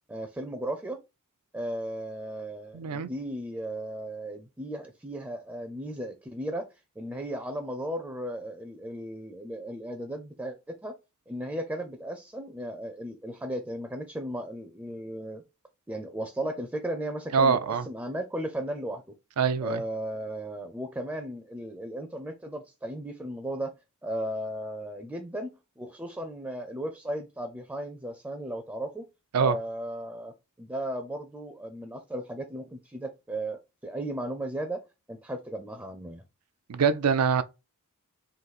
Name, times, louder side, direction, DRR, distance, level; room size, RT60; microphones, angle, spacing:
voice 1, 0.1-1.0 1.5-10.9 11.3-15.4 15.9-19.0 19.6-23.7 24.0-25.5 25.8-29.1 29.3-34.8 35.1-36.2, right 1 dB, 10° right, 0.5 m, -35 dB
voice 2, 2.7-3.1 17.3-17.9 19.4-19.8 29.3-29.6 36.7-37.4, right 6 dB, 85° right, 0.5 m, -24 dB
3.9 x 2.6 x 4.1 m
head